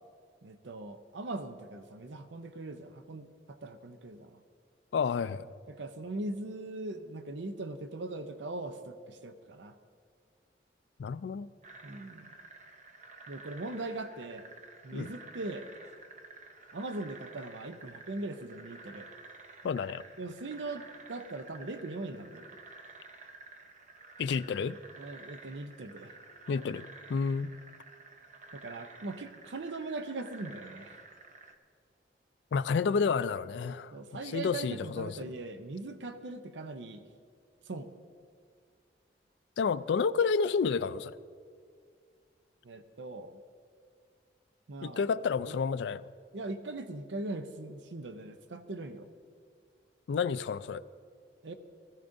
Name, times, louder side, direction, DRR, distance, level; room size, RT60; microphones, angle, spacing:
voice 1, 0.4-4.4 5.7-9.7 11.8-12.3 13.3-14.5 14.8-15.7 16.7-19.1 20.2-22.6 25.0-26.2 28.5-30.9 33.9-37.0 37.7-37.9 42.6-43.4 44.7-45.0 45.5-45.6 46.3-49.1 51.4-51.5, right 2 dB, 80° right, 9 dB, 0.6 m, -40 dB
voice 2, 4.9-5.4 11.0-11.5 14.9-15.1 19.6-20.0 24.2-24.8 26.5-27.6 32.5-33.9 34.3-35.2 39.6-41.2 44.8-46.1 50.1-50.8, left 5 dB, 75° left, 14 dB, 0.3 m, -30 dB
sound 1, 11.6-31.6, right 3 dB, 40° right, 0.8 m, -51 dB
19.0 x 14.5 x 2.6 m, 2.1 s
head